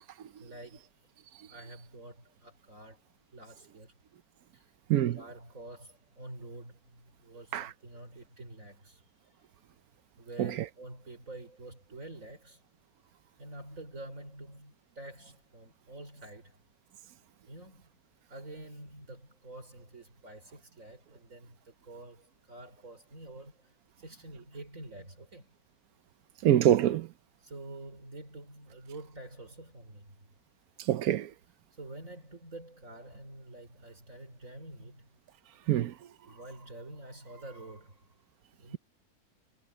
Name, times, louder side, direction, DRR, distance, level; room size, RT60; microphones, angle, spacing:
voice 1, 0.4-0.9 1.4-4.0 4.5-4.7 5.0-9.0 10.2-12.6 13.4-16.6 17.5-18.0 18.3-25.5 27.4-30.1 31.7-35.2 35.9-38.1 38.6-38.8, right 2 dB, 60° right, 5.5 m, -48 dB
voice 2, 4.9-5.2 7.5-7.7 10.4-10.7 26.4-27.1 30.8-31.3 35.7-35.9, right 12 dB, 75° right, 1.2 m, -25 dB
omnidirectional pair, 1.6 m